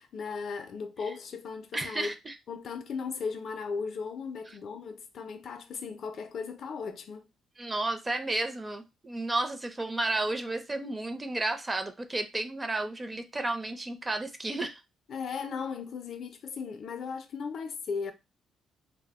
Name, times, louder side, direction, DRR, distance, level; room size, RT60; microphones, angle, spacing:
voice 1, 0.0-2.1 2.5-7.2 15.1-18.1, left 5 dB, 60° left, 0.4 m, -36 dB
voice 2, 1.7-2.3 7.6-14.8, right 2 dB, 20° right, 0.4 m, -32 dB
2.0 x 2.0 x 3.4 m
cardioid pair, 90°, 0 cm